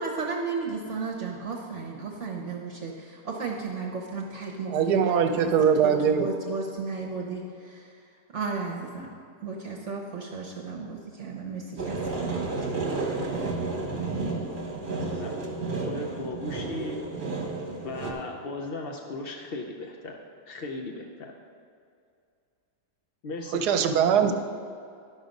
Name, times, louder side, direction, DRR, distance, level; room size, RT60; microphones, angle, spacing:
voice 1, 0.0-5.5 5.8-8.0 8.3-9.1 9.4-12.5, right 4 dB, 50° right, 0 dB, 1.0 m, -34 dB
voice 2, 4.7-6.3 23.5-24.3, right 7 dB, 75° right, 7 dB, 1.1 m, -22 dB
sound 1, 11.8-18.1, right 3 dB, 35° right, 1.2 m, -31 dB
voice 3, 14.9-15.4 15.9-17.0 17.8-20.2 20.5-21.3 23.2-23.6 24.2-24.3, left 2 dB, 70° left, 2 dB, 0.5 m, -36 dB
11.0 x 5.9 x 5.2 m, 2.4 s
omnidirectional pair, 1.8 m